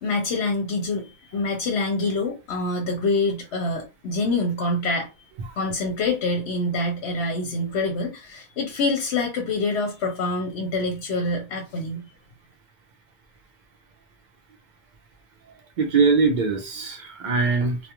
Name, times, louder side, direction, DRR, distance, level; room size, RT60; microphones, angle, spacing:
voice 1, 0.0-5.1 5.6-12.1, left 2 dB, 70° left, 0.8 m, -26 dB
voice 2, 15.8-17.8, right 4 dB, 55° right, 0.5 m, -21 dB
2.3 x 2.2 x 2.9 m
omnidirectional pair, 1.2 m